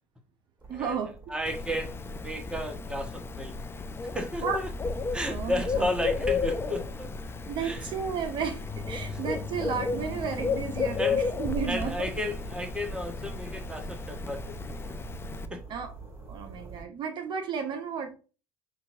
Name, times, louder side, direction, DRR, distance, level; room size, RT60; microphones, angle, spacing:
sound 1, 0.6-16.8, right 4 dB, 25° right, 1.7 m, -46 dB
voice 1, 0.7-1.1 4.4-4.6 5.3-5.9 7.5-12.1 15.7-15.9 16.3-18.1, right 6 dB, 50° right, 0.8 m, -33 dB
voice 2, 1.3-3.5 4.0-4.7 5.1-7.1 7.6-7.9 9.1-9.2 11.0-11.2 11.7-14.9 15.5-15.6, left 1 dB, 10° right, 1.2 m, -33 dB
Bird, 1.5-15.5, left 4 dB, 25° left, 0.5 m, -33 dB
5.7 x 2.8 x 2.7 m
supercardioid pair, 80°, 10 cm